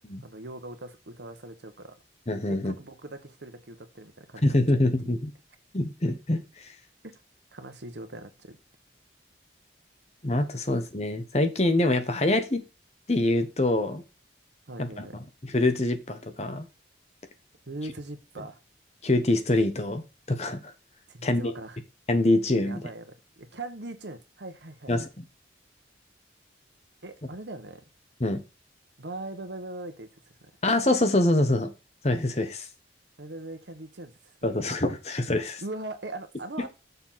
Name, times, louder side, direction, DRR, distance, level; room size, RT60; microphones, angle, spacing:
voice 1, 0.0-1.9 2.5-4.6 7.0-7.1 7.5-8.6 14.7-15.1 17.7-18.6 21.1-21.8 22.6-23.0 23.4-24.9 27.0-27.8 29.0-30.1 30.4-30.5 33.2-34.5 35.6-36.7, right 2 dB, 70° right, 1.3 m, -40 dB
voice 2, 2.3-2.7 4.4-5.3 5.7-6.7 10.2-12.6 13.1-14.0 14.8-15.1 15.4-16.7 19.0-20.7 21.2-21.5 22.1-22.9 24.9-25.2 28.2-28.4 30.6-31.7 32.0-32.7 34.4-35.6, left 1 dB, 35° left, 1.1 m, -25 dB
6.8 x 4.6 x 5.7 m
head